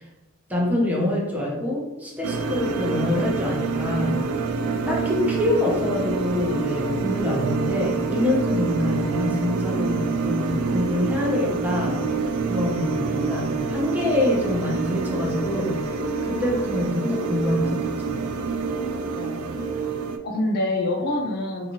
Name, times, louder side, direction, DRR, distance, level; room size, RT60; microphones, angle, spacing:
voice 1, 0.5-4.2 4.9-12.1 12.5-15.8 16.2-18.2, left 1 dB, 5° right, -3 dB, 0.6 m, -25 dB
sound 1, 2.2-20.2, right 4 dB, 70° right, 0.3 m, -27 dB
voice 2, 19.2-19.8 20.2-21.7, left 1 dB, 45° left, 2 dB, 0.4 m, -26 dB
2.6 x 2.3 x 2.9 m, 1.0 s
head